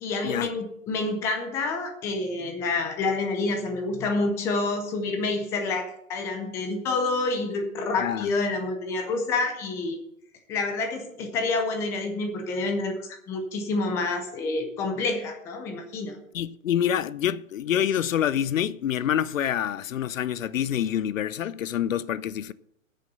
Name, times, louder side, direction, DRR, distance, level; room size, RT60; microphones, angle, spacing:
voice 1, 0.0-10.0 10.5-16.2, left 3 dB, 5° left, 0.5 m, -28 dB
voice 2, 16.3-22.5, left 10 dB, 75° left, 0.7 m, -27 dB
9.3 x 6.8 x 8.7 m
hypercardioid pair, 150°, 39 cm